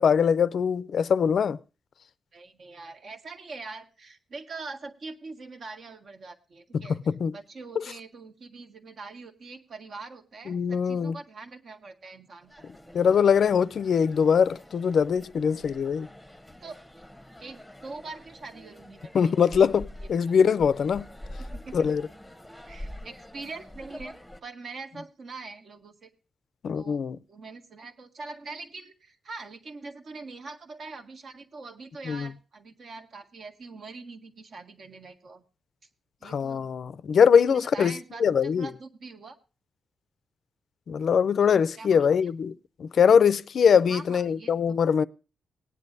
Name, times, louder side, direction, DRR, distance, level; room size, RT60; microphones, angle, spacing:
voice 1, 0.0-1.6 6.7-7.4 7.8-7.9 10.5-11.2 12.9-16.1 19.1-21.1 21.7-22.1 26.6-27.2 32.1-32.3 36.2-37.9 38.2-38.7 40.9-42.5 42.8-45.0, left 7 dB, 55° left, 0.5 m, -22 dB
voice 2, 2.3-7.0 7.3-12.7 16.6-16.8 17.4-19.3 21.5-21.9 22.7-24.1 24.4-26.1 26.7-27.0 27.3-35.4 36.2-36.7 37.2-39.4 41.4-42.1 43.9-44.8, right 3 dB, 50° right, 1.6 m, -43 dB
sound 1, 12.4-24.4, left 1 dB, ahead, 1.1 m, -45 dB
19.0 x 9.8 x 2.6 m
wide cardioid pair, 155°, 0 cm